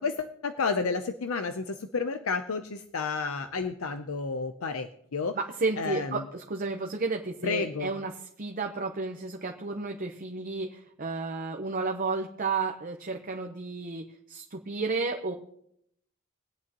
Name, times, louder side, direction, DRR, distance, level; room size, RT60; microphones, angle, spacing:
voice 1, 0.0-5.4 5.8-6.2 7.4-7.9, left 4 dB, 85° left, 8 dB, 0.6 m, -31 dB
voice 2, 5.3-8.1 8.4-15.3, right 3 dB, 45° right, 3 dB, 0.8 m, -32 dB
22.5 x 8.6 x 3.0 m, 0.71 s
head